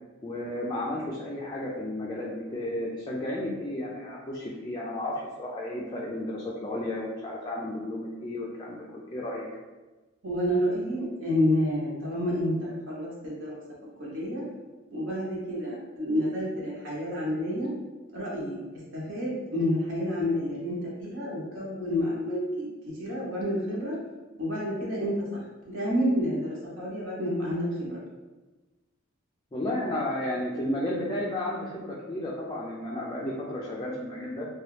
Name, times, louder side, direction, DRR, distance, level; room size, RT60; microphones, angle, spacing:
voice 1, 0.2-9.5 29.5-34.5, left 1 dB, 20° left, -5 dB, 0.4 m, -33 dB
voice 2, 10.2-13.6 14.0-14.4 14.9-17.7 18.1-18.6 18.9-22.7 23.0-24.0 24.4-25.2 25.7-26.5 26.8-28.0, equal, 65° right, -6 dB, 0.9 m, -29 dB
2.9 x 2.3 x 3.2 m, 1.2 s
head